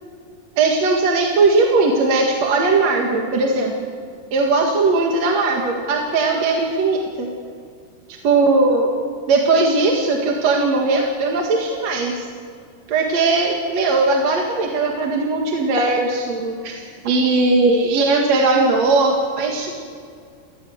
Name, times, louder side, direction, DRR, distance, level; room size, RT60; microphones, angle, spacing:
voice 1, 0.6-3.7 4.3-7.3 8.2-8.9 9.3-12.3 12.9-19.7, right 3 dB, 55° right, 0 dB, 2.9 m, -18 dB
28.5 x 16.0 x 8.0 m, 2.2 s
omnidirectional pair, 3.8 m